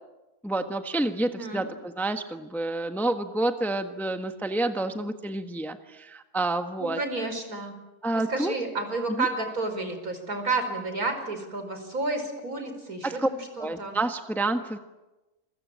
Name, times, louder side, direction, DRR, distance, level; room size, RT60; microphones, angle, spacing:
voice 1, 0.4-7.0 8.0-8.5 9.2-9.3 13.0-13.3 13.6-14.8, right 2 dB, ahead, 7 dB, 1.2 m, -29 dB
voice 2, 1.3-1.7 6.8-7.8 8.1-14.0, right 3 dB, 65° right, 6 dB, 5.4 m, -31 dB
28.5 x 22.5 x 8.7 m, 1.1 s
omnidirectional pair, 1.6 m